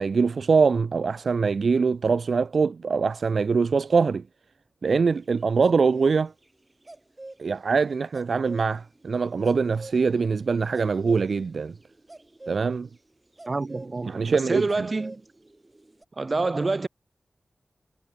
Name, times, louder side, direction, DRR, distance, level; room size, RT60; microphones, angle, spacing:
voice 1, 0.0-4.2 4.8-6.3 7.4-11.7 12.5-12.9 14.1-14.9, right 5 dB, 80° right, 0.5 m, -23 dB
sound 1, 5.2-7.4 7.7-7.8 8.1-16.0, right 2 dB, 30° right, 7.0 m, -46 dB
voice 2, 13.5-15.2 16.2-16.9, right 3 dB, 50° right, 7.6 m, -27 dB
cardioid pair, 55°, 0 cm